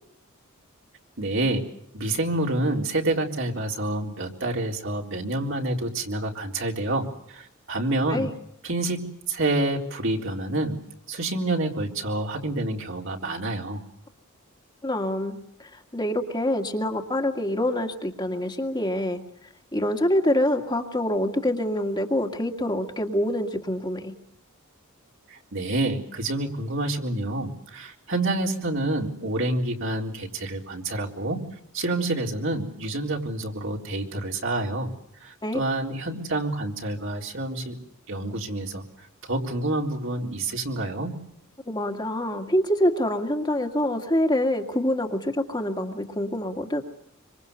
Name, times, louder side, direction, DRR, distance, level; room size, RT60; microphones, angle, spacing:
voice 1, 1.2-1.6 1.9-8.3 8.6-10.8 11.1-13.8 25.3-31.4 31.7-34.9 35.2-37.8 38.1-38.8 39.3-41.1, right 2 dB, 60° right, 1 dB, 3.9 m, -28 dB
voice 2, 14.8-15.4 15.9-19.2 19.7-24.1 35.4-35.6 41.7-46.8, left 1 dB, 20° left, 2 dB, 2.0 m, -25 dB
26.0 x 25.5 x 6.9 m, 0.74 s
head